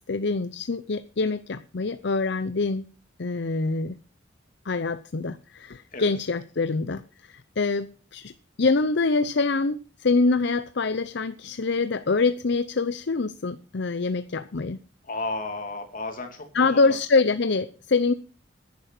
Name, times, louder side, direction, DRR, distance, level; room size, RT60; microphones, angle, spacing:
voice 1, 0.1-2.9 3.2-4.0 4.7-8.3 8.6-14.8 16.5-18.1, left 3 dB, 65° left, 0.7 m, -25 dB
voice 2, 15.0-17.0, left 2 dB, 45° left, 2.9 m, -33 dB
11.5 x 10.5 x 6.0 m
head